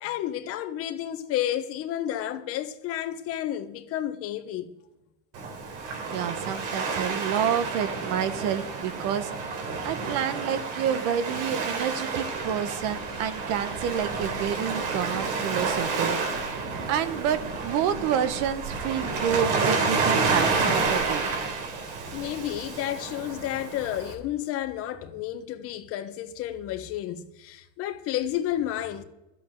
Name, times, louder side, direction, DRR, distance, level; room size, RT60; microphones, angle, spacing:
voice 1, 0.0-4.7 22.1-29.0, left 12 dB, 45° left, 1.2 m, -31 dB
Waves surf, 5.3-24.1, right 4 dB, 75° right, 4.1 m, -29 dB
voice 2, 6.1-9.3 9.8-16.5 16.9-21.2, right 9 dB, 50° right, 1.1 m, -29 dB
12.5 x 8.3 x 7.6 m
cardioid pair, 160°, 34 cm